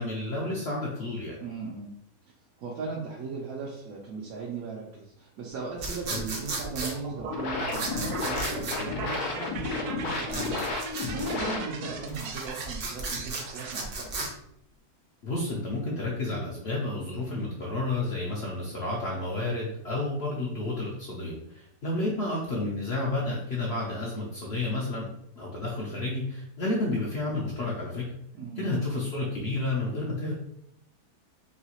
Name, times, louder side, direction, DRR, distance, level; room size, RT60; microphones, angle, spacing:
voice 1, 0.0-1.4 6.1-6.2 15.2-28.1 28.6-30.3, left 2 dB, 60° left, -3 dB, 0.7 m, -31 dB
voice 2, 1.4-1.9 2.6-14.2 28.3-28.7, right 4 dB, 75° right, -3 dB, 1.0 m, -38 dB
sound 1, 5.8-6.9 7.7-8.8 10.3-11.4 12.0-14.3, right 3 dB, 55° right, 0.8 m, -35 dB
sound 2, 6.8-13.8, right 5 dB, 90° right, 0.5 m, -40 dB
sound 3, 7.1-12.1, left 4 dB, 85° left, 1.1 m, -32 dB
3.1 x 2.8 x 2.9 m, 0.77 s
omnidirectional pair, 1.6 m